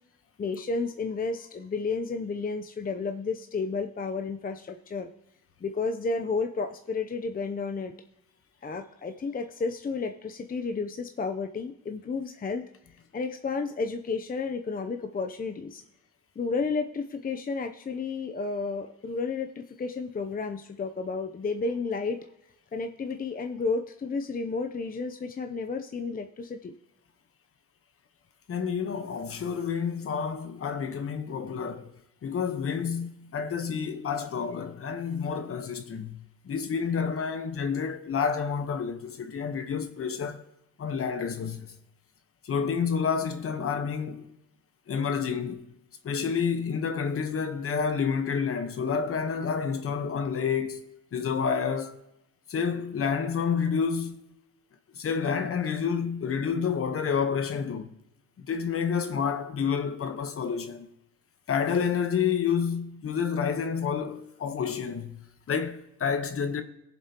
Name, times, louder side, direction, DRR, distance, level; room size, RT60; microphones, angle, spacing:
voice 1, 0.4-5.1 5.6-7.9 8.6-12.6 13.1-15.8 16.4-22.3 22.7-26.7, left 4 dB, 30° left, 0.6 m, -32 dB
voice 2, 28.5-31.9 32.2-36.2 36.4-40.4 40.8-41.7 42.4-44.3 44.9-45.6 46.0-50.8 51.1-52.0 52.5-54.2 54.9-57.9 58.4-60.9 61.5-65.2 65.5-66.6, left 6 dB, 50° left, 1.1 m, -29 dB
18.0 x 7.5 x 2.9 m
cardioid pair, 90°, 30 cm